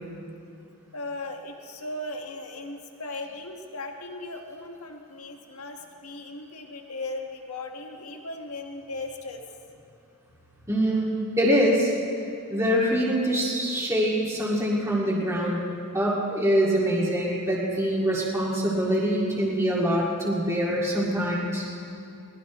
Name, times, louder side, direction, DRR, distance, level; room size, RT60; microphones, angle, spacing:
voice 1, 0.9-9.4, left 2 dB, 85° left, 3 dB, 1.6 m, -37 dB
voice 2, 10.7-11.9 12.5-15.6 15.9-21.6, equal, 15° right, -5 dB, 2.2 m, -24 dB
21.5 x 19.0 x 3.1 m, 2.6 s
head